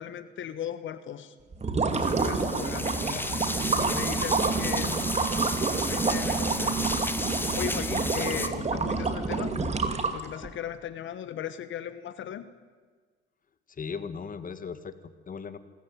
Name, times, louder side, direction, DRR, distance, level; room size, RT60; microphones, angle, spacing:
voice 1, 0.0-1.3 2.0-3.0 3.7-5.0 5.9-6.7 7.6-9.5 10.0-12.5, left 10 dB, 75° left, 13 dB, 1.3 m, -37 dB
sound 1, 1.5-10.5, right 4 dB, 35° right, 2.5 m, -28 dB
sound 2, 1.9-8.5, left 2 dB, 10° left, 1.8 m, -33 dB
voice 2, 3.0-3.5 4.5-4.6 13.7-15.6, left 6 dB, 45° left, 12 dB, 1.8 m, -38 dB
26.5 x 14.0 x 9.3 m, 1.5 s
cardioid pair, 90°, 20 cm